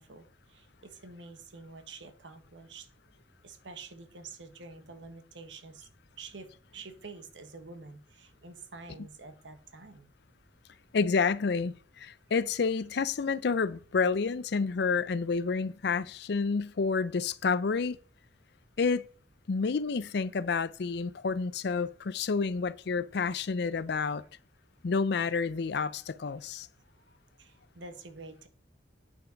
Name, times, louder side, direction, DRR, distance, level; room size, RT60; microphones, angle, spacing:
voice 1, 0.0-2.9 3.4-5.9 6.2-10.1 27.4-28.5, right 3 dB, 85° right, 1.3 m, -48 dB
voice 2, 10.9-18.0 18.8-19.1 19.5-24.2 24.8-26.7, left 5 dB, 65° left, 0.5 m, -29 dB
8.9 x 5.7 x 5.1 m
head